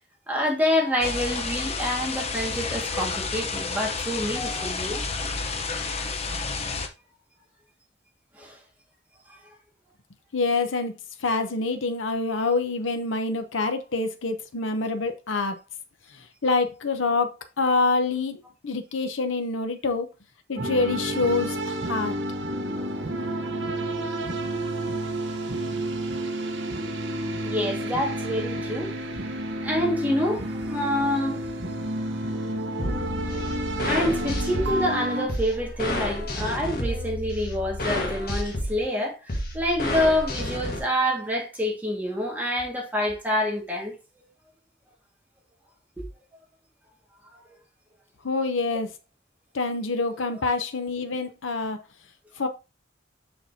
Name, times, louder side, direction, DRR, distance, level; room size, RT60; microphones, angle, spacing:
voice 1, 0.3-5.1 8.3-8.6 9.3-9.4 27.4-28.9 29.6-31.4 33.8-43.9 46.0-46.1, left 1 dB, 10° right, 1.8 m, -27 dB
sound 1, 1.0-6.9, left 4 dB, 35° left, 0.8 m, -30 dB
voice 2, 10.3-10.9 11.2-15.5 16.4-20.1 20.5-22.2 48.2-48.9 49.5-51.8 52.4-52.5, left 3 dB, 85° left, 0.8 m, -26 dB
sound 2, 20.6-35.3, right 1 dB, 65° right, 1.1 m, -30 dB
sound 3, 32.8-40.8, left 1 dB, 50° left, 1.6 m, -30 dB
6.6 x 5.8 x 2.8 m
head